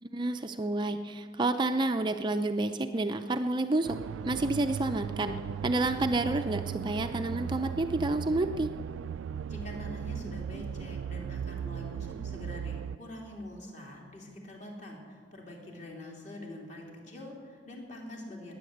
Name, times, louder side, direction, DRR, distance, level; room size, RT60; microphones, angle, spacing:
voice 1, 0.0-4.0 4.2-5.4 5.6-8.7, right 2 dB, 25° right, 7 dB, 0.4 m, -29 dB
sound 1, 3.8-13.0, right 7 dB, 85° right, 0.3 m, -37 dB
voice 2, 9.5-18.5, left 1 dB, 40° left, -1 dB, 3.3 m, -45 dB
20.0 x 9.3 x 7.9 m, 2.1 s
head